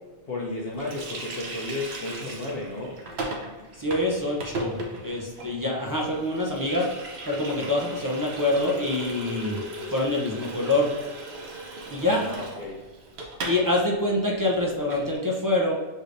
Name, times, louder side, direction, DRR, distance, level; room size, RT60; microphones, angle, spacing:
voice 1, 0.3-2.9 12.0-12.8, left 2 dB, 60° left, -4 dB, 0.9 m, -33 dB
Water tap faucet, 0.8-13.6 13.9-14.0 14.3-15.1, right 1 dB, 70° right, 1.0 m, -37 dB
voice 2, 3.8-7.0 7.2-9.6 9.9-10.9 11.9-12.3 13.4-15.7, left 1 dB, 25° right, -3 dB, 0.5 m, -25 dB
6.3 x 3.3 x 2.6 m, 1.3 s
omnidirectional pair, 1.2 m